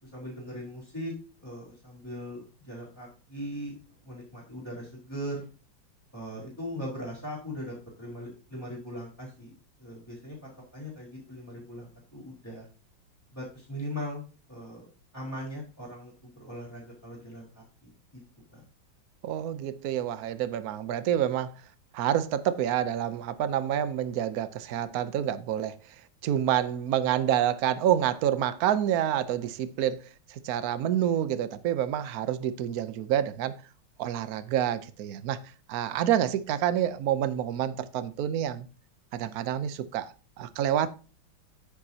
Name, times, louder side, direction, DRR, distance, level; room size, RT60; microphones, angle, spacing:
voice 1, 0.0-5.5 6.1-9.5 9.8-12.7 13.3-14.2 14.5-18.2 18.5-18.7, equal, 5° left, 4.1 m, -40 dB
voice 2, 19.2-21.5 21.9-25.8 26.2-30.0 30.3-33.6 34.0-35.4 35.7-38.7 39.1-40.9, right 10 dB, 65° right, 1.0 m, -28 dB
9.6 x 8.9 x 2.8 m
omnidirectional pair, 2.3 m